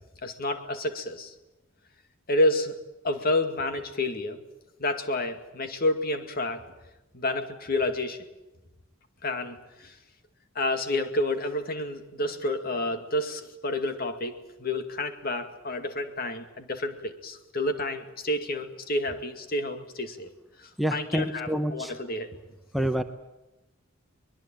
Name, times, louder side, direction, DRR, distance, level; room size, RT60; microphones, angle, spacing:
voice 1, 0.2-1.3 2.3-2.8 3.0-4.4 4.8-6.6 7.1-8.2 9.2-10.0 10.6-20.3 20.6-22.4, left 1 dB, 45° left, 7 dB, 2.3 m, -29 dB
voice 2, 20.8-21.9 22.7-23.0, equal, ahead, 6 dB, 0.9 m, -27 dB
23.5 x 21.5 x 9.1 m, 0.98 s
head